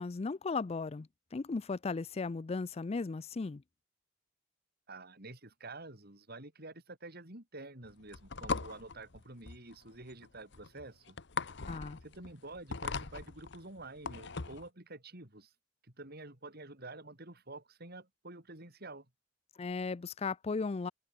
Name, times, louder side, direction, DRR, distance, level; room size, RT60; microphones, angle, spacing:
voice 1, 0.0-3.6 11.7-12.0 19.6-20.9, left 4 dB, 30° left, 0.4 m, -36 dB
voice 2, 4.9-11.2 12.0-15.5 16.0-19.1, right 2 dB, 55° right, 5.4 m, -49 dB
sound 1, 7.8-14.7, left 4 dB, 65° left, 1.2 m, -40 dB
head